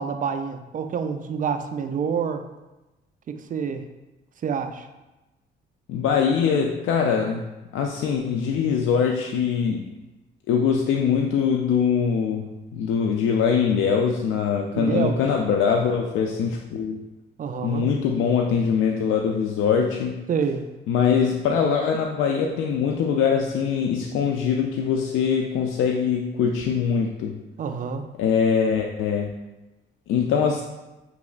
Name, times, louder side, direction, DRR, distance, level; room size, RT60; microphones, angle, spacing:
voice 1, 0.0-2.5 3.3-3.8 4.4-4.9 14.7-15.2 17.4-17.9 20.3-20.7 27.6-28.1, right 6 dB, 40° right, 8 dB, 0.4 m, -27 dB
voice 2, 5.9-9.9 10.5-17.0 17.6-20.3 20.9-27.4 28.2-29.3 30.1-30.6, left 6 dB, 80° left, 1 dB, 0.4 m, -23 dB
6.0 x 3.0 x 2.4 m, 1.0 s
cardioid pair, 90°, 20 cm